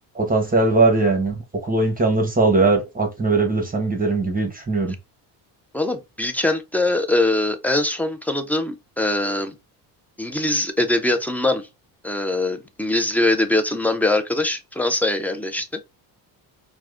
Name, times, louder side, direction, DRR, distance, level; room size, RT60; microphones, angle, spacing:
voice 1, 0.1-1.3 1.6-4.9, right 3 dB, 20° right, 1.0 m, -20 dB
voice 2, 5.7-9.5 10.2-11.7 12.0-15.7, left 2 dB, 5° left, 0.3 m, -22 dB
4.5 x 2.2 x 2.4 m
cardioid pair, 90°, 46 cm